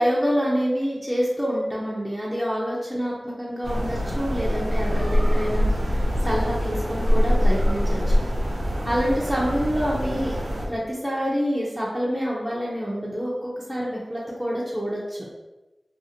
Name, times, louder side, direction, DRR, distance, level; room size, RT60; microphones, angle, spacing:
voice 1, 0.0-8.2 8.8-10.4 10.7-15.3, equal, 5° right, -6 dB, 0.5 m, -27 dB
sound 1, 3.6-10.7, equal, 75° right, 0.6 m, -23 dB
2.5 x 2.4 x 2.8 m, 1.0 s
wide cardioid pair, 75°, 0 cm